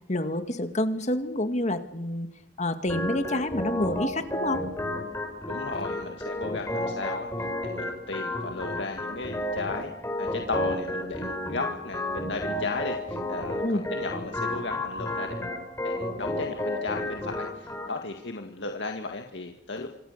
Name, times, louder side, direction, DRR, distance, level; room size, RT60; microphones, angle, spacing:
voice 1, 0.1-2.3 2.6-4.6 13.6-13.8, left 1 dB, 40° left, 8 dB, 2.1 m, -28 dB
Organ, 2.9-17.9, left 1 dB, 15° left, 5.6 m, -32 dB
voice 2, 5.5-9.9 10.2-13.6 13.9-19.9, left 3 dB, 75° left, 3 dB, 2.0 m, -35 dB
27.0 x 25.5 x 6.7 m, 0.77 s
head